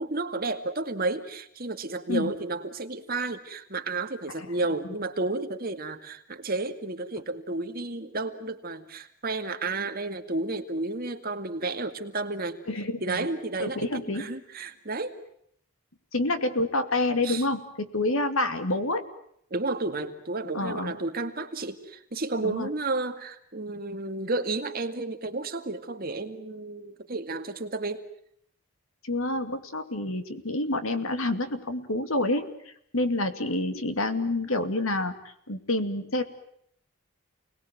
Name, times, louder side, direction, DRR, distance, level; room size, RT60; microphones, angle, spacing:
voice 1, 0.0-12.6 13.0-15.2 17.2-17.5 19.5-28.0, right 2 dB, 45° right, 6 dB, 2.2 m, -32 dB
voice 2, 12.7-13.3 13.6-14.3 16.1-19.0 20.5-20.9 22.4-22.7 29.0-32.5 32.9-35.1 35.5-36.2, left 2 dB, 70° left, 9 dB, 2.6 m, -28 dB
29.5 x 20.5 x 9.4 m, 0.70 s
head